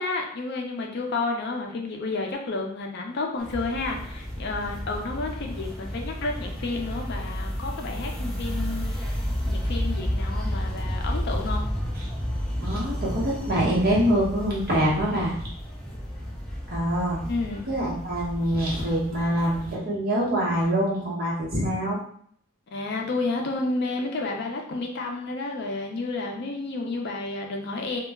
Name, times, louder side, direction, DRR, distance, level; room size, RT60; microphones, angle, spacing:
voice 1, 0.0-9.2 9.4-11.7 17.2-17.7 22.7-28.0, left 3 dB, 55° left, 1 dB, 0.4 m, -31 dB
sound 1, 3.4-19.7, equal, 5° left, 0.5 m, -31 dB
voice 2, 12.6-15.3 16.7-17.2 17.7-22.0, right 1 dB, 50° right, -5 dB, 0.9 m, -25 dB
2.2 x 2.0 x 3.4 m, 0.62 s
head